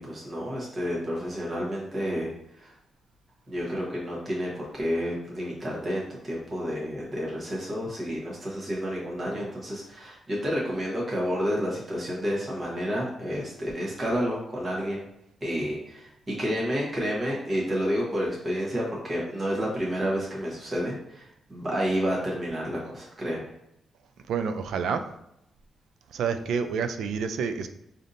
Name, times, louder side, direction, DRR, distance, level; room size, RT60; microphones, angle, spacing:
voice 1, 0.0-2.3 2.6-2.7 3.5-15.0 15.4-23.5, equal, 20° right, -5 dB, 1.0 m, -30 dB
voice 2, 24.3-25.0 26.1-27.7, right 6 dB, 75° right, 9 dB, 0.3 m, -28 dB
5.1 x 2.7 x 2.5 m, 0.81 s
wide cardioid pair, 175°, 0 cm